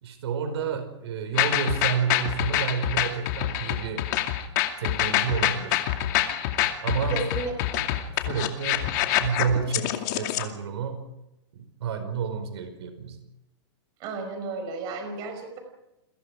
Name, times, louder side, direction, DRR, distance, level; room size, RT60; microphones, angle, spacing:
voice 1, 0.0-4.0 4.8-5.8 6.8-7.2 8.2-8.9 9.2-11.1 11.5-13.2, right 6 dB, 65° right, 8 dB, 4.9 m, -30 dB
sound 1, 1.3-10.4, left 13 dB, 40° left, 2.4 m, -26 dB
voice 2, 7.1-7.8 14.0-15.6, right 4 dB, 25° right, 5 dB, 5.1 m, -33 dB
29.5 x 21.5 x 4.9 m, 0.90 s
hypercardioid pair, 165°, 15 cm